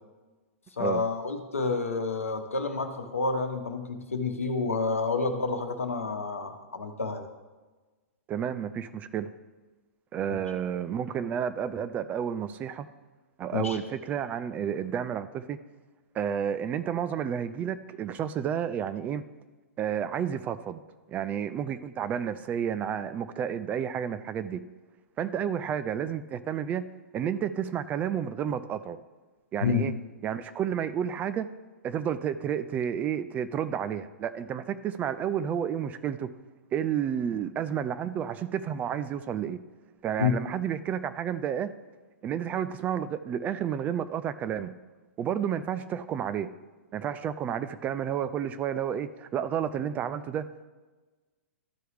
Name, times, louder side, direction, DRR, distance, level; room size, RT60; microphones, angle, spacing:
voice 1, 0.8-7.2 10.3-10.4 13.5-13.8 29.6-29.9 40.2-40.3, left 4 dB, 75° left, 6 dB, 1.0 m, -29 dB
voice 2, 8.3-9.3 10.1-12.9 13.4-15.6 16.1-19.2 19.8-20.8 21.1-24.6 25.2-26.8 27.1-29.0 29.5-29.9 30.2-31.5 31.8-36.3 36.7-39.6 40.0-41.7 42.2-44.7 45.2-46.5 46.9-50.7, right 8 dB, 20° right, 12 dB, 0.3 m, -31 dB
13.0 x 4.6 x 3.4 m, 1.3 s
figure-of-eight pair, 110°, 7 cm